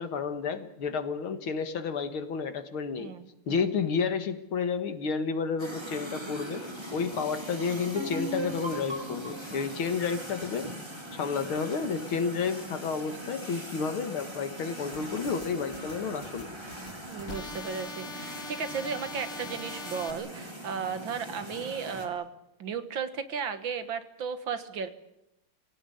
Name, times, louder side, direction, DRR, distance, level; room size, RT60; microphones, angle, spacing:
voice 1, 0.0-3.1 3.5-6.6 6.9-10.7 11.1-16.5, left 5 dB, 75° left, 9 dB, 2.5 m, -31 dB
voice 2, 3.0-3.6 17.1-22.3 22.6-24.9, right 6 dB, 65° right, 10 dB, 2.2 m, -35 dB
sound 1, 5.6-22.1, right 1 dB, 10° right, 3.3 m, -41 dB
sound 2, 8.0-11.5, right 1 dB, 30° right, 4.9 m, -38 dB
sound 3, 14.9-20.1, left 4 dB, 35° left, 2.5 m, -43 dB
24.0 x 17.5 x 9.9 m, 0.88 s
omnidirectional pair, 2.3 m